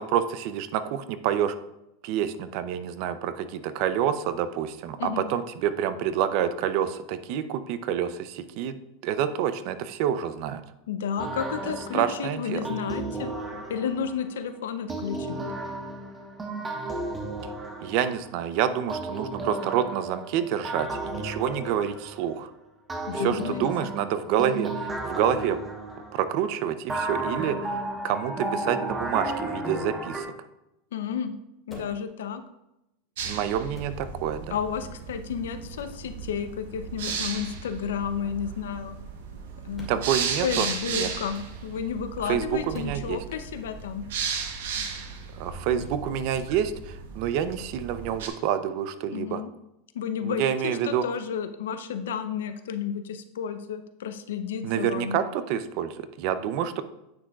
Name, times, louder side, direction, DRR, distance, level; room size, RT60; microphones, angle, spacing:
voice 1, 0.0-1.5 2.0-8.8 9.0-10.6 11.9-12.7 17.8-22.5 23.1-25.6 26.1-30.3 33.2-34.6 39.9-41.1 42.3-43.2 44.9-45.1 45.4-49.4 50.2-51.0 54.6-56.8, right 9 dB, 55° right, 12 dB, 0.6 m, -28 dB
voice 2, 10.9-13.3 13.7-15.5 23.1-23.9 30.9-31.4 31.7-32.4 34.5-39.0 39.6-40.0 40.4-44.0 49.1-49.5 49.9-55.2, left 7 dB, 90° left, 10 dB, 0.6 m, -32 dB
sound 1, 11.2-14.3 14.9-18.4 18.9-22.4 22.9-26.4 26.9-30.2, right 2 dB, 15° right, 1.3 m, -34 dB
sound 2, 29.3-29.5 31.7-32.0 33.7-34.0 35.7-36.0 37.0-37.3 39.7-40.0 42.7-43.0 45.7-46.0 47.5-47.7, left 2 dB, 15° left, 2.3 m, -44 dB
sound 3, 33.2-48.3, right 6 dB, 80° right, 1.1 m, -35 dB
8.8 x 6.1 x 2.4 m, 0.87 s
supercardioid pair, 130°, 0 cm